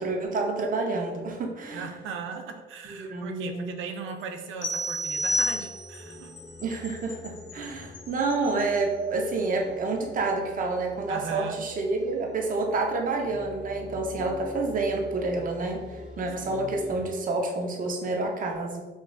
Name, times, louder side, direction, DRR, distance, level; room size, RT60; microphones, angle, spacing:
voice 1, 0.0-1.9 2.9-3.8 6.6-18.8, right 3 dB, 45° right, 2 dB, 0.6 m, -29 dB
voice 2, 1.7-6.3 11.1-11.7 16.4-16.8, right 5 dB, 85° right, 5 dB, 0.5 m, -38 dB
Wind chime, 3.9-9.6, left 3 dB, 45° left, 1.0 m, -51 dB
sound 1, 4.6-6.1, equal, 70° left, 0.5 m, -28 dB
sound 2, 5.1-17.1, left 1 dB, 5° right, 0.7 m, -46 dB
4.8 x 2.3 x 2.3 m, 1.3 s
cardioid pair, 90°, 20 cm